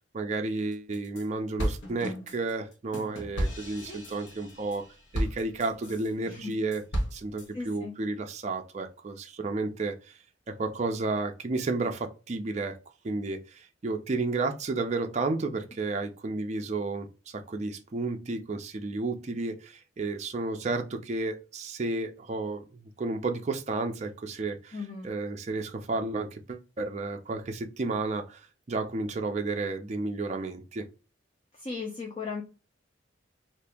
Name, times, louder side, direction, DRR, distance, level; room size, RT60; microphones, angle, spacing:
voice 1, 0.1-4.8 5.1-6.8 7.1-10.2 10.5-12.8 13.0-30.9, right 3 dB, 35° right, 4 dB, 0.4 m, -32 dB
sound 1, 0.7-1.2 1.6-6.1 6.5-7.5, equal, 70° left, 1.0 m, -33 dB
voice 2, 7.5-7.9 24.7-25.1 31.5-32.4, left 4 dB, 30° left, 0 dB, 0.5 m, -37 dB
2.7 x 2.5 x 3.4 m, 0.31 s
head